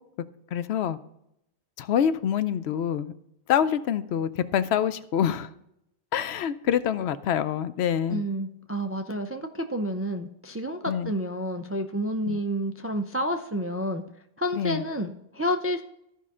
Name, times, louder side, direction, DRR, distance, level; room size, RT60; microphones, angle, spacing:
voice 1, 0.5-1.0 1.8-3.1 3.5-5.5 6.1-8.2 10.9-11.1 12.3-12.4 14.5-14.8, left 9 dB, 75° left, 13 dB, 0.8 m, -26 dB
voice 2, 8.1-14.0 14.4-15.8, equal, 25° right, 6 dB, 0.3 m, -29 dB
14.0 x 5.5 x 3.7 m, 0.80 s
omnidirectional pair, 1.1 m